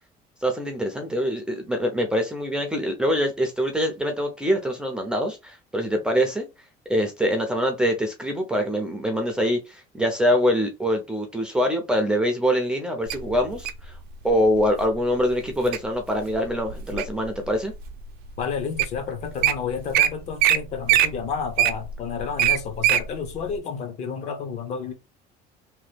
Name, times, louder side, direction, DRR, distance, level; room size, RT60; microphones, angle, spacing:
voice 1, 0.4-6.5 6.9-13.9 14.2-17.7, equal, 5° right, 0.4 m, -24 dB
Wild animals, 13.1-13.8 14.5-14.8 15.3-15.8 16.3-17.2 17.8-17.9 18.5-18.6 18.8-19.0 19.2-19.5 19.9-20.1 20.4-20.6 20.9-23.0 23.5-23.6, right 12 dB, 65° right, 0.4 m, -21 dB
voice 2, 18.4-24.9, left 6 dB, 40° left, 0.6 m, -31 dB
2.9 x 2.1 x 3.3 m
cardioid pair, 175°, 17 cm